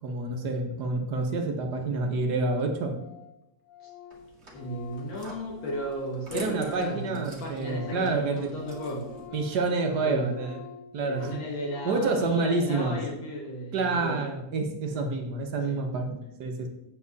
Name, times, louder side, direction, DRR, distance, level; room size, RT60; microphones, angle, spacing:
voice 1, 0.0-3.0 6.3-8.5 9.3-10.6 10.9-11.4 11.9-13.0 13.7-16.7, right 3 dB, 60° right, 4 dB, 1.7 m, -28 dB
Organ, 2.6-2.7 2.9-3.3 3.6-7.2 7.5-13.1, left 8 dB, 55° left, 1.9 m, -46 dB
sound 1, 4.1-9.3, right 3 dB, 35° right, 2.0 m, -45 dB
voice 2, 4.5-9.1 10.0-10.4 11.0-14.2 14.9-15.1 15.7-15.8, equal, 80° left, -1 dB, 2.1 m, -35 dB
8.5 x 7.3 x 4.1 m, 0.89 s
omnidirectional pair, 2.0 m